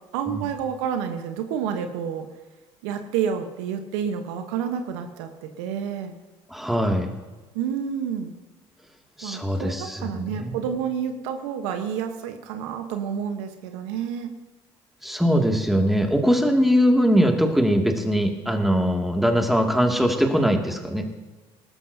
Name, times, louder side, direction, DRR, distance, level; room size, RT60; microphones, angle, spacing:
voice 1, 0.1-2.3 2.8-6.1 7.5-8.3 9.2-14.3, right 8 dB, 80° right, 7 dB, 1.2 m, -29 dB
voice 2, 6.5-7.1 9.2-10.5 15.0-21.1, equal, ahead, 2 dB, 2.4 m, -21 dB
19.0 x 13.0 x 2.8 m, 1.3 s
hypercardioid pair, 60°, 15 cm